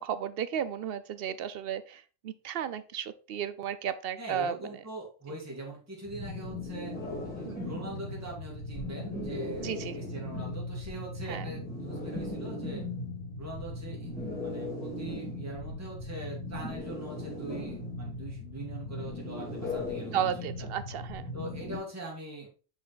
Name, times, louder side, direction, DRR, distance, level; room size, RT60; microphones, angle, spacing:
voice 1, 0.0-4.6 7.4-7.6 9.6-9.9 11.3-11.4 20.1-21.2, right 9 dB, 60° right, 13 dB, 0.7 m, -34 dB
voice 2, 4.2-7.0 7.3-12.9 13.4-14.1 14.4-20.2 20.6-20.7 21.3-22.5, right 2 dB, 15° right, -3 dB, 1.8 m, -42 dB
sound 1, 6.1-21.8, left 2 dB, 5° left, 2.5 m, -38 dB
6.1 x 5.0 x 4.0 m, 0.37 s
omnidirectional pair, 1.3 m